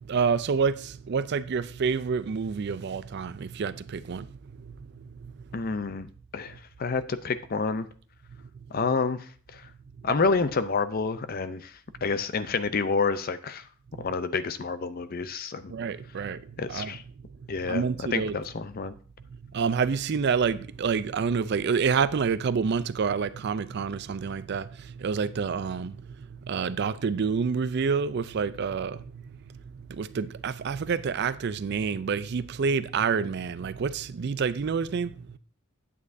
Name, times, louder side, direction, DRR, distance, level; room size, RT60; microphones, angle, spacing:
voice 1, 0.1-4.3 15.7-16.4 16.7-16.9 17.7-18.4 19.5-26.0 26.4-29.0 29.9-35.1, right 5 dB, 50° right, 0.4 m, -28 dB
voice 2, 5.5-7.9 8.7-9.7 10.0-13.6 14.0-15.7 16.6-17.0 17.5-17.8 18.1-18.9, left 4 dB, 45° left, 0.5 m, -29 dB
9.7 x 8.4 x 2.6 m
head